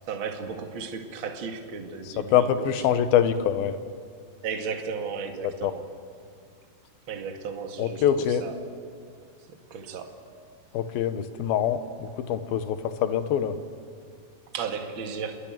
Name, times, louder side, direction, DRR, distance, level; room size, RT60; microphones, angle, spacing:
voice 1, 0.1-3.0 4.4-5.9 7.1-8.7 9.5-10.2 14.5-15.4, right 5 dB, 35° right, 4 dB, 2.2 m, -35 dB
voice 2, 2.3-3.8 5.4-5.7 7.8-8.4 10.7-13.6, left 9 dB, 70° left, 10 dB, 2.8 m, -24 dB
28.5 x 21.5 x 9.2 m, 2.1 s
omnidirectional pair, 4.8 m